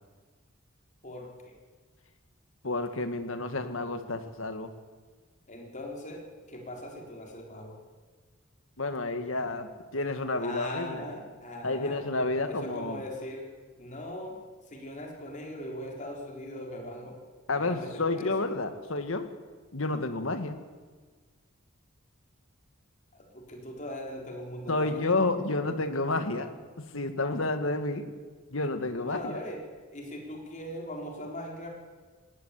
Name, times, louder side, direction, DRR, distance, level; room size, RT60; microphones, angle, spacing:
voice 1, 1.0-1.6 5.5-7.8 10.4-12.0 12.4-13.5 13.8-17.2 17.5-18.5 23.1-25.2 29.0-29.7 29.9-31.7, left 1 dB, 35° left, 1 dB, 4.0 m, -40 dB
voice 2, 2.6-4.7 8.8-11.0 11.6-13.0 17.5-19.3 19.7-20.6 24.7-26.5 26.9-28.0 28.5-29.4, left 2 dB, 70° left, 9 dB, 1.9 m, -30 dB
19.0 x 18.0 x 8.4 m, 1.5 s
head